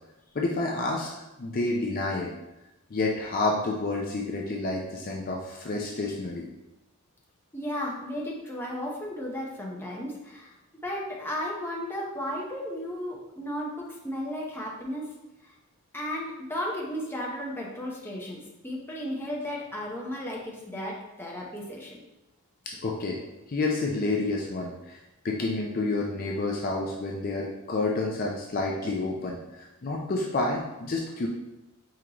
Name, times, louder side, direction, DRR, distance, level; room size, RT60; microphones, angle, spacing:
voice 1, 0.3-1.1 1.4-2.3 2.9-6.4 22.7-23.2 23.5-25.0 25.2-31.3, left 2 dB, 40° left, -1 dB, 0.4 m, -29 dB
voice 2, 7.5-10.5 10.8-15.1 15.4-15.5 15.9-22.0, equal, 10° left, -3 dB, 0.7 m, -34 dB
4.5 x 3.7 x 2.9 m, 0.97 s
head